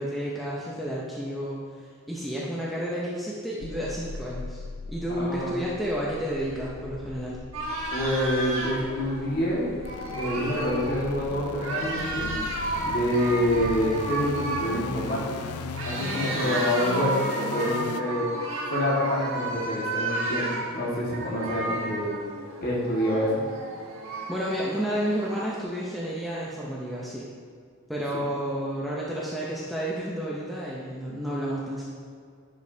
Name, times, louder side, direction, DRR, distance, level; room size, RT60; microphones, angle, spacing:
voice 1, 0.0-4.6 4.9-7.8 24.3-27.3 27.9-31.8, equal, ahead, -6 dB, 0.6 m, -31 dB
sound 1, 3.6-18.0, left 5 dB, 80° left, 0.3 m, -38 dB
voice 2, 5.1-5.5 7.9-9.7 10.1-12.3 12.8-18.3 18.7-20.5 20.7-22.1 22.6-23.4, equal, 40° left, -6 dB, 1.7 m, -27 dB
sound 2, 7.5-25.6, right 2 dB, 65° right, 1.3 m, -33 dB
10.5 x 5.2 x 2.7 m, 2.2 s
head